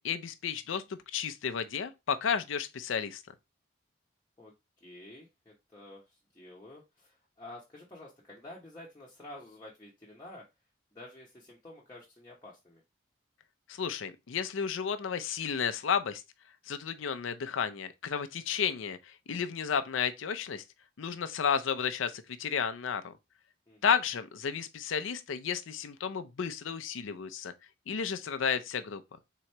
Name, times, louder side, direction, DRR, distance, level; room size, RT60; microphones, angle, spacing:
voice 1, 0.0-3.2 13.7-16.2 16.7-19.0 19.3-20.6 21.0-23.1 23.8-27.5 27.9-29.0, left 7 dB, 90° left, 0.5 m, -32 dB
voice 2, 4.8-6.0 6.3-10.4 10.9-12.8 23.7-23.9, left 1 dB, 20° left, 0.9 m, -50 dB
3.7 x 3.0 x 4.4 m
head